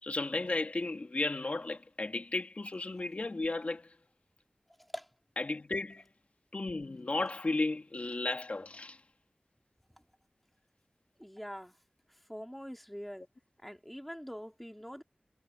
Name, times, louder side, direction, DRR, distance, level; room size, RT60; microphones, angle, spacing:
voice 1, 0.0-3.9 5.4-6.0 6.5-9.0, left 2 dB, 55° left, 2.2 m, -34 dB
voice 2, 11.2-11.7 12.3-13.3 13.6-15.0, equal, 5° left, 3.2 m, -43 dB
wide cardioid pair, 70°, 3 cm